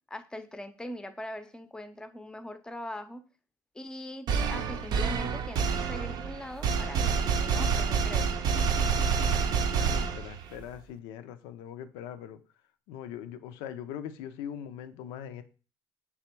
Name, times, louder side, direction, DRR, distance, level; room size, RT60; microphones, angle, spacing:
voice 1, 0.1-3.2 3.7-8.3, left 1 dB, 10° left, 0.5 m, -41 dB
sound 1, 4.3-10.6, right 5 dB, 60° right, 0.5 m, -28 dB
voice 2, 9.7-12.4 12.9-15.4, left 9 dB, 85° left, 0.4 m, -41 dB
3.4 x 2.9 x 4.4 m
supercardioid pair, 90°, 8 cm